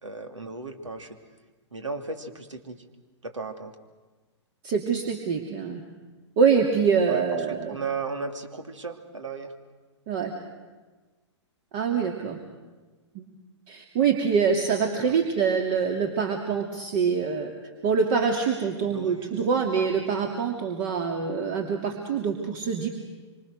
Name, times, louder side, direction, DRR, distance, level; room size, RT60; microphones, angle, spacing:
voice 1, 0.0-1.2 1.7-2.8 3.2-3.7 7.1-9.5 15.0-15.2 18.9-19.4, right 4 dB, 85° right, 7 dB, 2.8 m, -35 dB
voice 2, 4.6-5.8 6.4-7.8 10.1-10.3 11.7-12.4 13.1-13.2 13.7-17.5 17.8-22.9, right 6 dB, 45° right, 3 dB, 2.8 m, -25 dB
25.5 x 25.5 x 6.6 m, 1.3 s
figure-of-eight pair, 115°, 15 cm